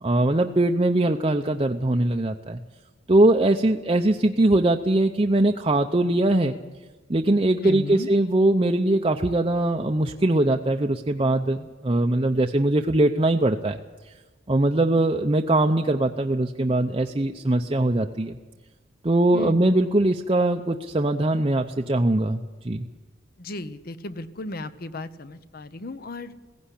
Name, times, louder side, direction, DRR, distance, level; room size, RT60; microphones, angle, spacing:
voice 1, 0.0-2.6 3.1-6.6 7.1-13.8 14.5-18.4 19.0-22.9, right 1 dB, 30° right, 3 dB, 0.7 m, -21 dB
voice 2, 7.6-8.1 19.3-19.6 23.4-26.3, left 2 dB, 50° left, 13 dB, 0.9 m, -34 dB
16.5 x 16.0 x 10.0 m, 1.3 s
head